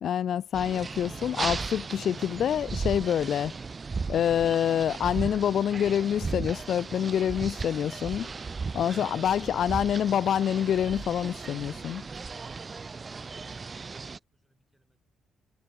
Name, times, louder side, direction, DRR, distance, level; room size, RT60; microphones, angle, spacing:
voice 1, 0.0-3.5 4.1-8.3 8.7-12.1, left 9 dB, 65° left, 0.3 m, -26 dB
sound 1, 0.5-14.2, right 4 dB, 35° right, 1.1 m, -36 dB
voice 2, 14.4-15.0, right 1 dB, 5° right, 2.3 m, -72 dB
cardioid pair, 90°, 0 cm